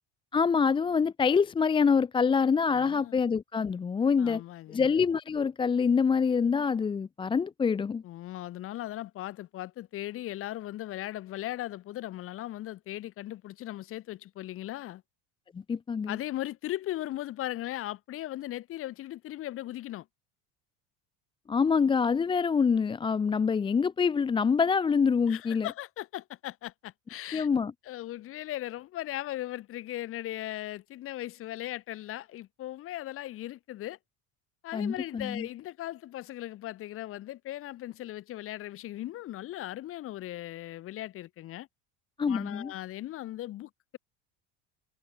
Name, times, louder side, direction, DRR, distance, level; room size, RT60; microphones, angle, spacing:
voice 1, 0.3-4.4 4.7-8.0 15.5-16.2 21.5-25.7 27.3-27.7 34.7-35.5 42.2-42.7, left 5 dB, 15° left, 0.9 m, -26 dB
voice 2, 2.7-3.2 4.2-4.9 8.0-15.0 16.1-20.1 25.3-27.5 27.8-34.0 34.6-41.7 42.3-44.0, left 14 dB, 40° left, 3.8 m, -38 dB
cardioid pair, 165°, 33 cm